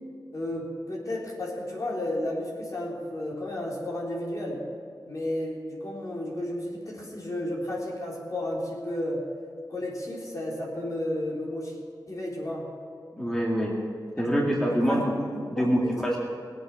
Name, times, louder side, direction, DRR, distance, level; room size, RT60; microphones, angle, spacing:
voice 1, 0.3-4.6 5.1-9.3 9.7-11.8 12.1-12.7 14.8-15.1 15.3-16.1, left 1 dB, 45° left, -3 dB, 3.8 m, -32 dB
voice 2, 13.2-13.7 14.2-16.2, equal, 5° left, -3 dB, 2.1 m, -25 dB
19.0 x 8.2 x 6.0 m, 2.2 s
wide cardioid pair, 70°, 8 cm